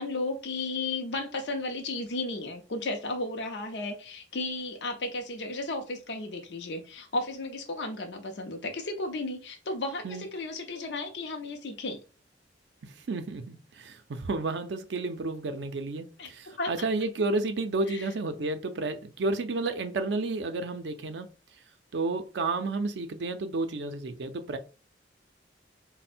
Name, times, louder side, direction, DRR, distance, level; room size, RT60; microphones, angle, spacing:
voice 1, 0.0-12.0 16.2-16.9 17.9-18.1, left 2 dB, 65° left, 0.6 m, -34 dB
voice 2, 12.8-21.3 21.9-24.6, right 3 dB, 65° right, 0.4 m, -31 dB
4.1 x 2.1 x 4.2 m
head